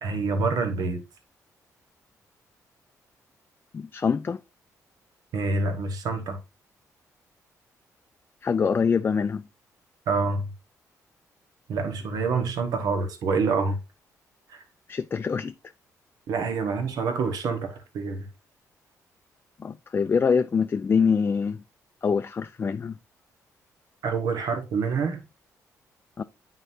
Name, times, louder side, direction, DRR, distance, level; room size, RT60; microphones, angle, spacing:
voice 1, 0.0-1.0 5.3-6.4 10.1-10.5 11.7-13.8 14.5-14.6 16.3-18.3 24.0-25.2, right 4 dB, 75° right, 1.2 m, -27 dB
voice 2, 3.7-4.4 8.4-9.4 14.9-15.5 19.6-21.6 22.0-23.0 26.2-26.3, left 6 dB, 35° left, 0.3 m, -24 dB
9.1 x 3.9 x 2.7 m
cardioid pair, 85°, 7 cm